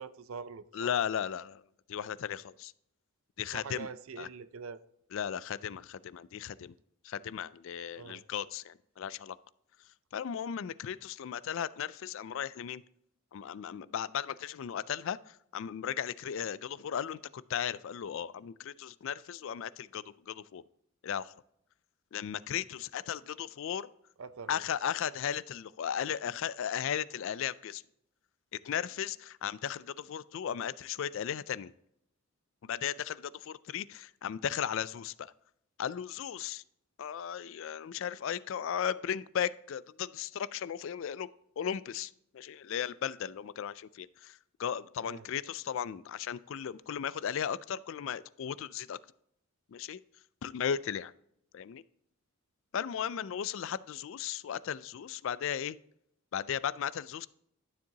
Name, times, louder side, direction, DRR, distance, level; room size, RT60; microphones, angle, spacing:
voice 1, 0.0-0.9 3.5-4.8 8.0-8.2 24.2-24.7 45.0-45.3, right 5 dB, 65° right, 0.5 m, -44 dB
voice 2, 0.7-1.6 1.9-2.7 3.4-3.9 4.2-4.3 5.1-6.7 7.0-9.4 10.1-12.8 13.3-20.6 21.0-21.3 22.1-23.9 24.5-27.8 28.5-31.7 32.6-35.3 35.8-36.6 37.0-41.3 41.6-49.0 49.7-50.0 50.4-51.1 51.5-51.8 52.7-55.8 56.3-57.3, left 8 dB, 60° left, 0.3 m, -36 dB
12.0 x 7.3 x 2.8 m
head